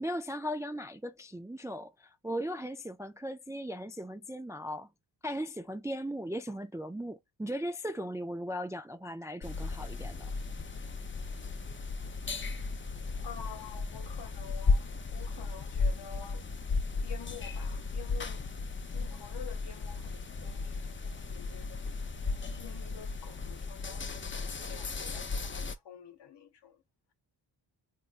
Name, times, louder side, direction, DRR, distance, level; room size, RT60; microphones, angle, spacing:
voice 1, 0.0-4.9 5.2-10.3, equal, 10° right, 0.3 m, -38 dB
sound 1, 9.4-25.8, left 4 dB, 25° left, 0.6 m, -35 dB
voice 2, 13.2-16.4 17.0-18.5 18.9-26.8, left 8 dB, 65° left, 0.9 m, -49 dB
3.5 x 3.0 x 2.4 m
cardioid pair, 75°, 44 cm